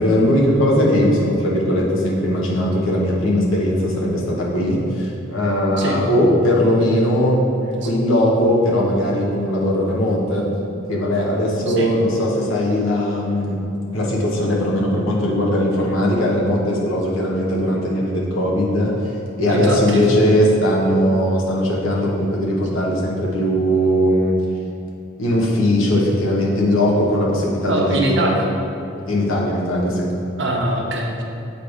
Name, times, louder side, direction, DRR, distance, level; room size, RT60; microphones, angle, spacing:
voice 1, 0.0-7.4 7.8-10.5 10.9-13.6 13.9-18.9 19.4-24.3 25.2-28.3 29.1-30.1, equal, 80° left, -3 dB, 1.2 m, -19 dB
voice 2, 19.5-20.0 27.7-28.5 30.4-31.2, right 1 dB, 60° right, 0 dB, 0.7 m, -22 dB
7.8 x 3.2 x 4.8 m, 2.7 s
head